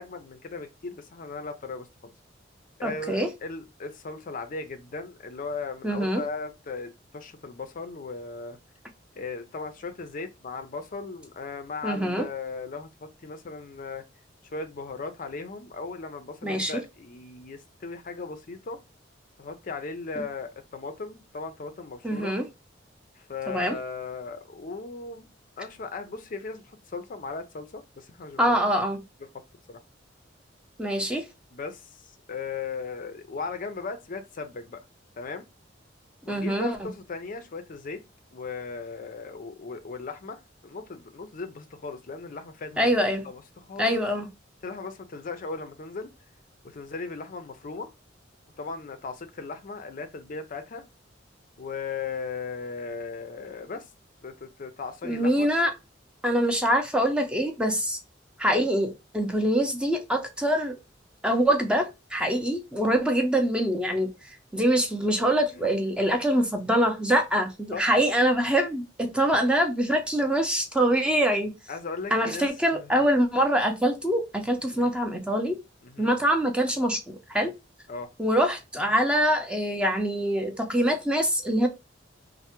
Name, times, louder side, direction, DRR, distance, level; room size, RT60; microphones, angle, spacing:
voice 1, 0.0-2.1 2.8-8.6 9.2-14.0 14.5-18.8 19.4-22.4 23.2-25.3 25.6-28.6 29.2-29.3 29.7-29.8 31.5-34.8 35.2-35.4 36.2-38.0 38.3-44.0 44.6-46.1 46.6-47.9 48.6-50.8 51.6-53.9 54.2-55.5 65.5-65.7 67.7-67.9 69.3-69.4 71.7-72.5 72.7-72.9 74.7-74.9 75.8-76.1 77.9-78.1, left 4 dB, 45° left, 0.4 m, -37 dB
voice 2, 2.8-3.3 5.8-6.2 11.8-12.3 16.4-16.7 20.2-20.3 22.0-22.4 23.5-23.8 28.4-29.0 30.8-31.2 36.3-36.9 42.8-43.2 43.8-44.3 55.0-55.7 56.2-58.0 58.4-60.7 61.2-64.1 64.5-71.5 72.1-75.6 76.0-77.5 78.2-81.7, equal, 5° right, 0.5 m, -24 dB
3.2 x 2.1 x 2.8 m
head